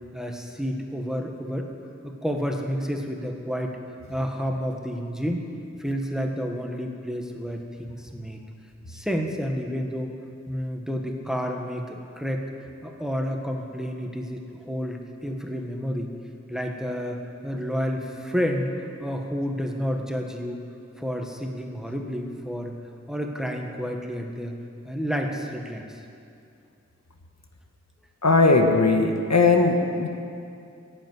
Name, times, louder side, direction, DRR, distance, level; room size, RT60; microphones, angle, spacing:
voice 1, 0.1-1.7 2.0-3.8 4.1-5.5 5.8-8.4 8.9-10.1 10.5-12.5 12.8-16.1 16.5-18.7 19.0-20.6 21.0-22.7 23.1-24.5 24.8-26.0, equal, ahead, 2 dB, 1.4 m, -30 dB
voice 2, 28.2-30.1, left 3 dB, 65° left, 3 dB, 1.3 m, -19 dB
14.0 x 8.1 x 9.6 m, 2.5 s
wide cardioid pair, 65°, 29 cm